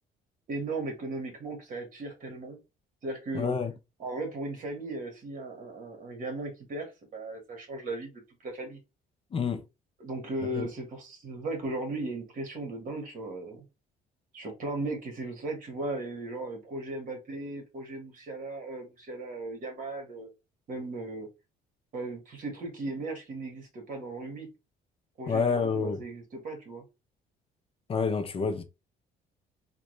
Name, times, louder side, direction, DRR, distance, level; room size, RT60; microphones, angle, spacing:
voice 1, 0.5-2.6 3.0-3.5 4.0-8.8 10.0-13.6 14.3-20.3 20.7-21.3 21.9-24.5 25.2-26.8, right 2 dB, 50° right, 1.7 m, -37 dB
voice 2, 3.3-3.7 9.3-9.6 10.5-10.7 25.3-26.0 27.9-28.6, left 5 dB, 35° left, 0.5 m, -28 dB
3.6 x 2.4 x 3.2 m
cardioid pair, 110°, 17 cm